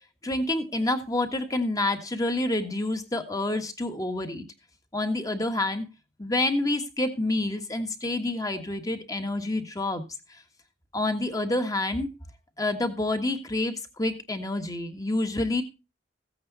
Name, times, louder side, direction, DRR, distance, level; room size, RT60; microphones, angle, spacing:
voice 1, 0.2-4.4 4.9-5.9 6.2-10.0 10.9-12.1 12.6-15.6, left 2 dB, 20° left, 7 dB, 1.5 m, -28 dB
15.0 x 8.7 x 4.0 m, 0.28 s
head